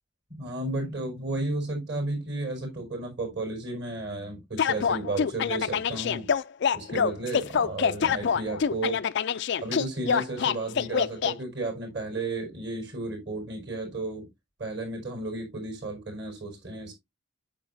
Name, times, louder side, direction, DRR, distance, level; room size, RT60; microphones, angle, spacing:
voice 1, 0.3-6.3 6.7-9.0 9.6-14.3 14.6-16.9, right 2 dB, 55° right, 2 dB, 4.7 m, -33 dB
sound 1, 4.6-11.3, left 7 dB, 55° left, 0.4 m, -25 dB
8.8 x 6.8 x 2.6 m, 0.19 s
head